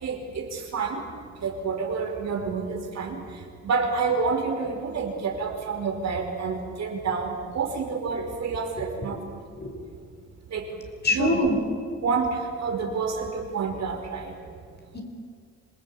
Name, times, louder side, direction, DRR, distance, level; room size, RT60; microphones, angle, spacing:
voice 1, 0.0-1.0 1.4-3.2 3.6-9.1 10.5-10.7 11.1-11.4 12.0-14.3, right 5 dB, 60° right, 2 dB, 5.1 m, -28 dB
voice 2, 8.8-9.7 11.0-11.6 14.9-15.0, left 2 dB, 35° left, 4 dB, 5.0 m, -26 dB
26.5 x 19.0 x 8.6 m, 2.2 s
cardioid pair, 90°, 30 cm